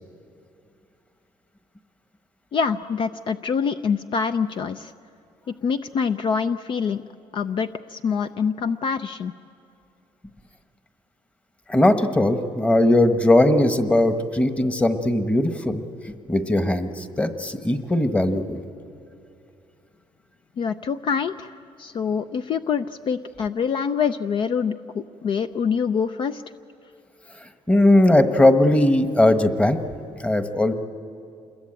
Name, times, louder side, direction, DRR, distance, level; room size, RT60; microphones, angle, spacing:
voice 1, 2.5-4.9 5.5-7.0 7.3-9.3 20.6-26.4, left 6 dB, 50° left, 10 dB, 0.6 m, -25 dB
voice 2, 11.7-15.8 16.3-18.6 27.7-29.8 30.2-30.7, left 1 dB, 10° left, 8 dB, 1.3 m, -19 dB
27.5 x 21.5 x 8.9 m, 2.6 s
cardioid pair, 125°, 11 cm